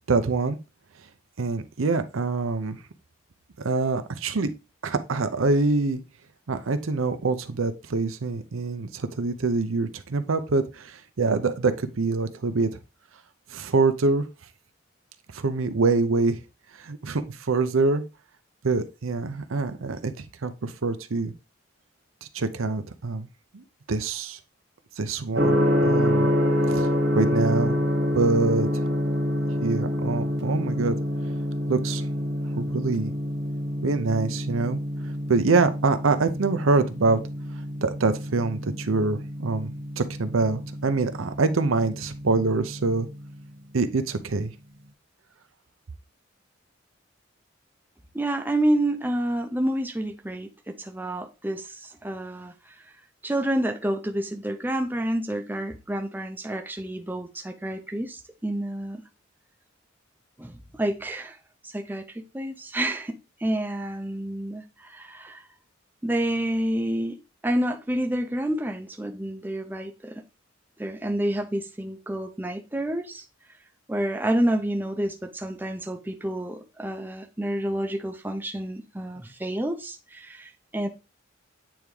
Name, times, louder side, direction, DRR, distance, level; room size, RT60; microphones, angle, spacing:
voice 1, 0.1-0.6 1.4-2.8 3.6-4.5 4.8-6.0 6.5-12.8 13.5-14.3 15.3-16.4 16.8-18.0 18.6-20.1 20.4-21.3 22.3-23.3 23.5-24.4 25.0-26.3 26.7-26.9 27.1-27.8 28.1-28.7 29.6-31.0 31.7-32.0 32.6-33.1 33.8-34.8 35.3-37.2 37.8-43.1 43.7-44.5, right 3 dB, 85° right, 0.7 m, -25 dB
Gong, 25.4-43.2, equal, 65° right, 1.5 m, -27 dB
voice 2, 48.1-52.7 53.2-59.0 60.4-61.4 61.6-65.5 66.0-67.2 67.4-70.2 70.8-73.2 73.9-80.9, right 1 dB, 10° right, 0.5 m, -29 dB
8.7 x 3.5 x 3.2 m
head